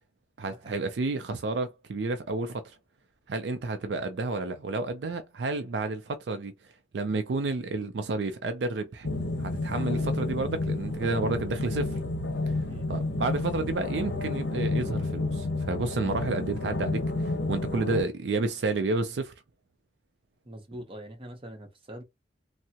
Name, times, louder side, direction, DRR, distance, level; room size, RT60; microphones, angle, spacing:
voice 1, 0.4-2.8 3.3-6.5 6.9-9.1 9.4-12.0 12.5-12.6 12.9-19.3, right 3 dB, 65° right, 0.4 m, -30 dB
sound 1, 9.0-18.0, left 2 dB, 65° left, 0.7 m, -30 dB
voice 2, 20.5-22.0, right 1 dB, 30° right, 0.7 m, -43 dB
3.4 x 2.0 x 2.8 m
head